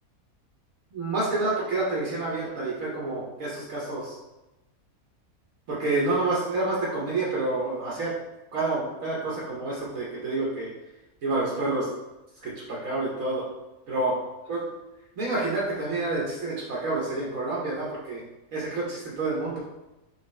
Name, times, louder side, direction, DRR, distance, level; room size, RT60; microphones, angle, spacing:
voice 1, 0.9-4.2 5.7-8.1 8.5-10.7 11.2-11.9 12.4-13.4 13.9-14.2 14.5-14.6 15.2-18.2 18.5-19.6, right 2 dB, 65° right, -5 dB, 1.2 m, -28 dB
4.2 x 3.8 x 3.1 m, 1.0 s
omnidirectional pair, 1.6 m